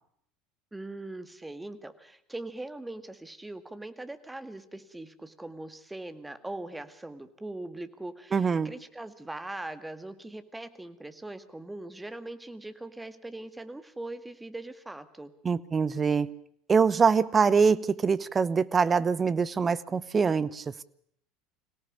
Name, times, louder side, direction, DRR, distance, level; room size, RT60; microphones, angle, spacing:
voice 1, 0.7-15.3, right 2 dB, 10° right, 10 dB, 2.0 m, -41 dB
voice 2, 8.3-8.7 15.4-16.3 16.7-20.8, right 5 dB, 25° right, 17 dB, 0.9 m, -24 dB
24.5 x 17.5 x 6.8 m, 0.69 s
figure-of-eight pair, 70°, 0 cm